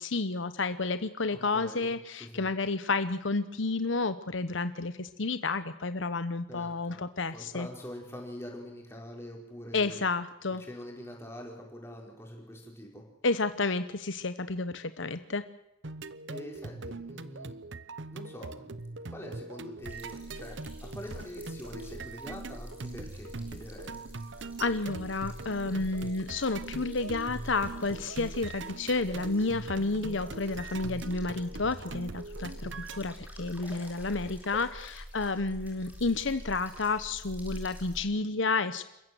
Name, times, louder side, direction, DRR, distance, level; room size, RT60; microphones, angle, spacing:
voice 1, 0.0-7.7 9.7-10.6 13.2-15.4 24.6-38.8, left 3 dB, 70° left, 11 dB, 1.1 m, -31 dB
voice 2, 1.3-1.9 2.2-2.5 6.5-7.0 7.3-10.0 10.5-13.0 16.3-17.6 18.1-18.8 19.1-20.6 20.8-24.0, left 1 dB, 15° left, 0 dB, 5.2 m, -44 dB
sound 1, 15.8-33.0, right 3 dB, 65° right, 1.0 m, -42 dB
sound 2, 19.8-38.0, equal, 10° right, 6.1 m, -46 dB
28.5 x 15.5 x 7.9 m, 0.86 s
head